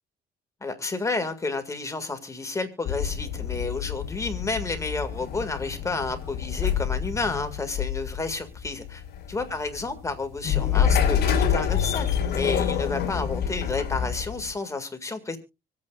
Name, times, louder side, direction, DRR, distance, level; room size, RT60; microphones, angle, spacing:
voice 1, 0.6-9.0 9.3-15.4, left 3 dB, 15° left, 2.1 m, -31 dB
sound 1, 2.8-14.5, left 8 dB, 65° left, 2.5 m, -27 dB
25.0 x 8.6 x 2.4 m
cardioid pair, 110°, 17 cm